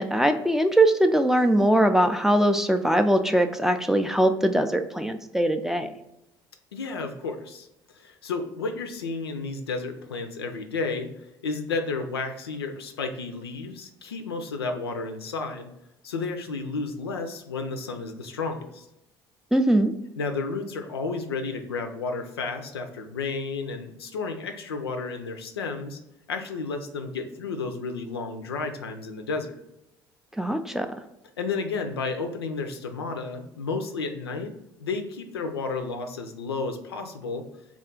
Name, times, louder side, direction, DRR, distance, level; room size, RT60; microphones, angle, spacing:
voice 1, 0.0-5.9 19.5-19.9 30.4-30.9, right 1 dB, 5° right, 7 dB, 0.3 m, -21 dB
voice 2, 6.7-7.7 7.9-11.1 11.4-15.7 16.0-18.9 20.2-26.0 26.3-29.6 31.4-34.5 34.8-37.4, left 4 dB, 85° left, 6 dB, 0.4 m, -32 dB
3.7 x 2.3 x 3.7 m, 0.87 s
figure-of-eight pair, 60°, 13 cm